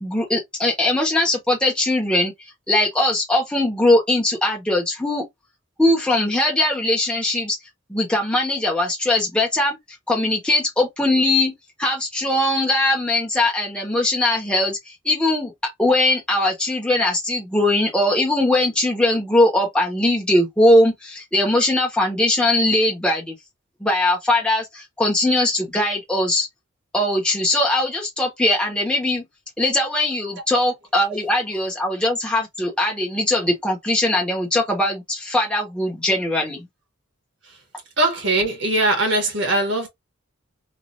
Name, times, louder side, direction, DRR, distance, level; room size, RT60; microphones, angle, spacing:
voice 1, 0.0-2.3 2.7-5.2 5.8-7.6 7.9-9.8 10.1-11.5 11.8-15.5 15.8-23.4 23.8-26.5 26.9-29.2 29.6-36.7, left 1 dB, 5° left, 1.1 m, -20 dB
voice 2, 38.0-39.9, right 2 dB, 60° right, 1.4 m, -20 dB
3.1 x 2.6 x 2.6 m
head